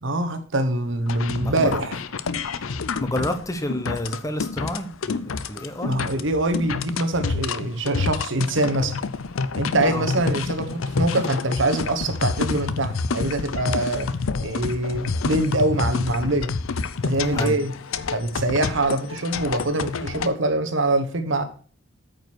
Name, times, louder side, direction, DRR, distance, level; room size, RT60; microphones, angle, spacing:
voice 1, 0.0-2.0 5.8-9.0 9.5-14.1 14.4-16.5 17.0-17.7 18.1-21.4, right 1 dB, 65° right, 1.2 m, -24 dB
sound 1, 1.1-20.3, left 4 dB, 75° left, 0.6 m, -28 dB
voice 2, 1.4-1.7 3.0-6.0 9.9-10.0 17.2-17.6, left 1 dB, 15° left, 1.1 m, -29 dB
8.8 x 5.3 x 6.1 m
head